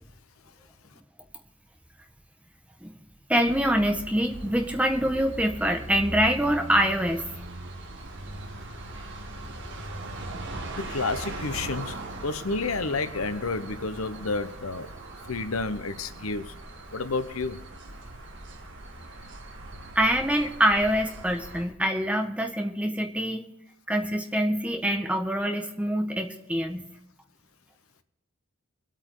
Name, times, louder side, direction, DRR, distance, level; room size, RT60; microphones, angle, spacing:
voice 1, 3.3-7.2 19.9-23.4 23.9-26.9, equal, 5° right, 1.5 m, -25 dB
sound 1, 3.5-21.6, right 1 dB, 60° right, 2.1 m, -40 dB
voice 2, 10.9-11.9 12.2-14.9 15.3-16.4 16.9-17.6, left 3 dB, 90° left, 1.1 m, -30 dB
24.0 x 8.7 x 3.9 m
head